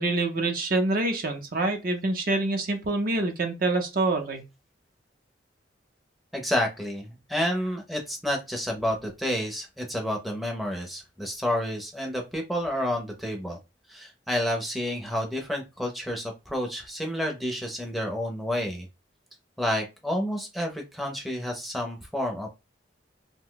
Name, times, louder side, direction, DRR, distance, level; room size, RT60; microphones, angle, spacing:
voice 1, 0.0-4.4, right 2 dB, 50° right, 0.6 m, -26 dB
voice 2, 6.3-13.6 13.9-18.9 19.6-22.5, equal, ahead, 0.6 m, -30 dB
2.6 x 2.1 x 3.8 m
head